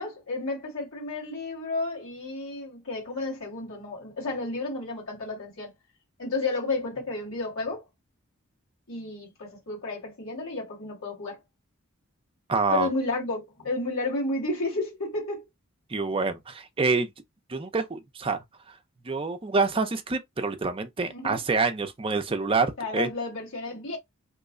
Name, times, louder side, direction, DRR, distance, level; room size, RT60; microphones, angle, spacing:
voice 1, 0.0-5.7 6.2-7.8 8.9-11.4 12.7-15.5 21.1-21.4 22.8-24.0, left 2 dB, 65° left, 1.8 m, -32 dB
voice 2, 12.5-12.9 15.9-17.1 17.5-18.4 19.0-23.1, right 4 dB, 25° right, 0.5 m, -26 dB
3.0 x 2.1 x 3.7 m
head